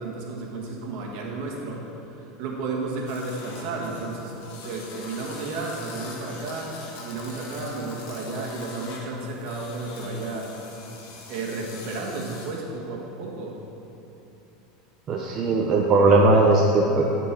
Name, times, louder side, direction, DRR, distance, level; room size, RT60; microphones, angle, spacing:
voice 1, 0.0-1.8 2.1-4.3 4.6-6.7 7.0-10.5 11.3-13.6, right 3 dB, 60° right, -1 dB, 1.6 m, -32 dB
sound 1, 3.1-12.6, left 3 dB, 70° left, 1.5 m, -42 dB
voice 2, 15.1-17.0, right 2 dB, 40° right, -1 dB, 0.8 m, -18 dB
12.5 x 4.5 x 4.5 m, 2.9 s
supercardioid pair, 105°, 0 cm